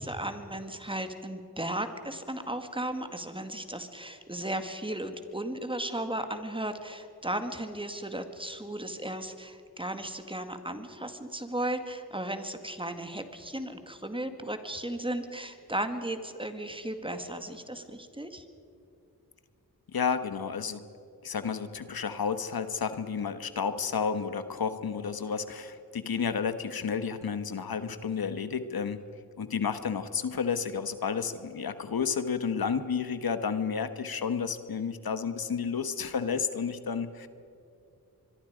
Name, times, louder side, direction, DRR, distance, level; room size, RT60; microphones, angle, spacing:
voice 1, 0.0-18.5, right 1 dB, 15° right, 7 dB, 2.0 m, -35 dB
voice 2, 19.9-20.8 21.2-29.0 29.4-37.3, left 6 dB, 75° left, 11 dB, 1.3 m, -31 dB
25.0 x 23.0 x 5.1 m, 2.6 s
wide cardioid pair, 70°, 36 cm